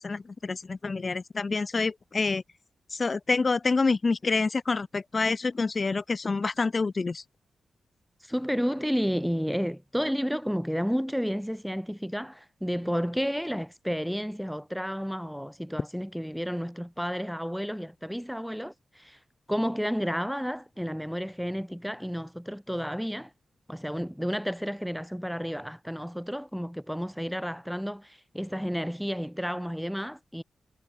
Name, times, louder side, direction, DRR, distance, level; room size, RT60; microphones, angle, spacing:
voice 1, 0.0-2.4 2.9-7.2, left 4 dB, 35° left, 0.6 m, -27 dB
voice 2, 8.2-19.2 19.5-23.3 23.7-30.4, equal, ahead, 1.3 m, -31 dB
wide cardioid pair, 140°, 0 cm